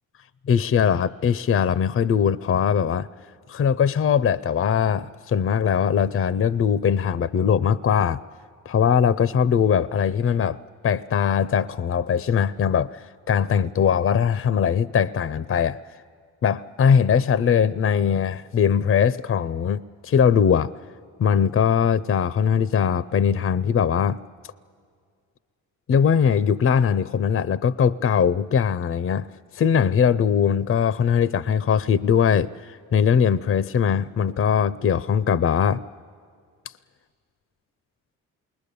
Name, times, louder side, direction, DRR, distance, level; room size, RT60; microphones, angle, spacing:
voice 1, 0.5-3.1 3.5-8.2 8.7-15.8 16.4-20.7 21.2-24.2 25.9-29.3 29.5-35.8, left 7 dB, 40° left, 0.5 m, -21 dB
28.0 x 21.0 x 6.9 m
supercardioid pair, 55°, 35 cm